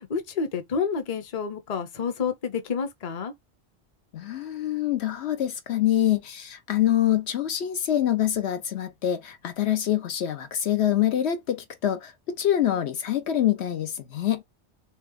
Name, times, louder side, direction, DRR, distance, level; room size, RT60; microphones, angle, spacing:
voice 1, 0.1-3.3, left 6 dB, 40° left, 0.8 m, -29 dB
voice 2, 4.1-14.4, left 11 dB, 75° left, 1.0 m, -25 dB
3.4 x 2.9 x 3.6 m
omnidirectional pair, 1.1 m